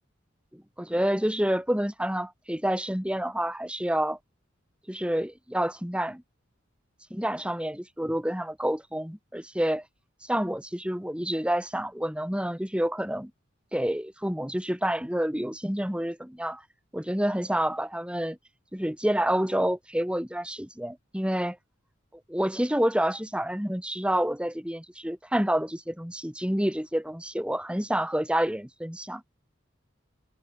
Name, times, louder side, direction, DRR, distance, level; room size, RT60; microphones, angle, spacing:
voice 1, 0.5-4.2 4.9-6.2 7.1-9.8 10.3-13.3 13.7-16.6 16.9-18.4 18.7-21.6 22.3-29.2, equal, 5° right, 2.7 m, -28 dB
head